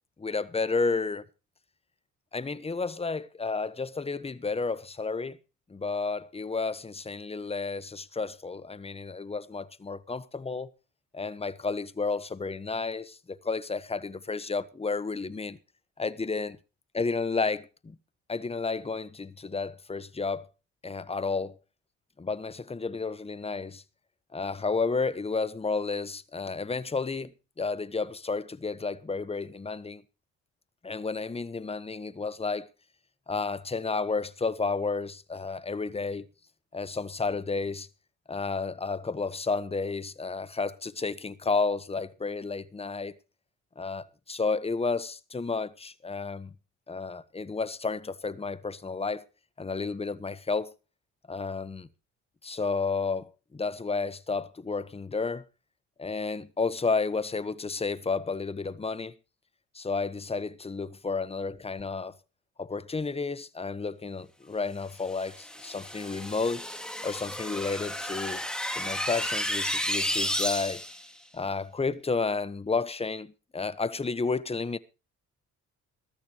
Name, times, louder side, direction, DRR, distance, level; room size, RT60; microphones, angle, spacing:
voice 1, 0.2-1.2 2.3-5.4 5.7-10.7 11.1-15.6 16.0-16.6 16.9-17.9 18.3-20.5 20.8-21.6 22.2-23.8 24.3-27.3 27.6-30.0 30.8-32.7 33.3-36.2 36.7-37.9 38.3-43.1 43.8-46.5 46.9-49.2 49.6-50.7 51.3-51.9 52.4-55.4 56.0-59.1 59.7-62.2 62.6-66.7 67.0-68.4 68.7-70.8 71.3-74.8, left 4 dB, 20° left, 1.1 m, -31 dB
sound 1, 65.1-71.1, equal, ahead, 2.6 m, -32 dB
21.5 x 13.0 x 3.0 m
cardioid pair, 90°, 30 cm